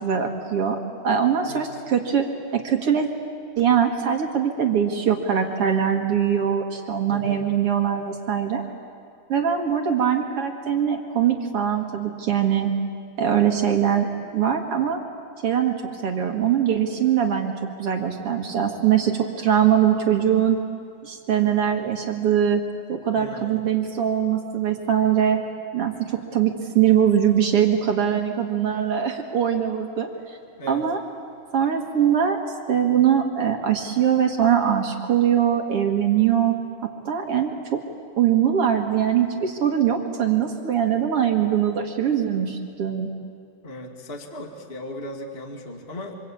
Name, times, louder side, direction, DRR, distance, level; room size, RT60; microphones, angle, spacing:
voice 1, 0.0-0.8 1.0-2.3 2.5-3.1 3.6-8.6 9.3-12.7 13.2-14.1 14.3-15.0 15.4-15.7 16.0-17.5 17.8-20.6 21.0-22.6 22.9-25.4 25.7-30.4 30.7-31.0 31.5-32.4 32.7-36.5 36.8-37.8 38.2-43.1, right 9 dB, 55° right, 3 dB, 1.6 m, -22 dB
voice 2, 1.4-1.8 7.1-7.4 23.2-23.6 26.4-26.6 30.6-30.8 43.6-46.2, left 1 dB, 25° left, 1 dB, 1.3 m, -37 dB
27.5 x 25.5 x 8.5 m, 2.3 s
omnidirectional pair, 4.8 m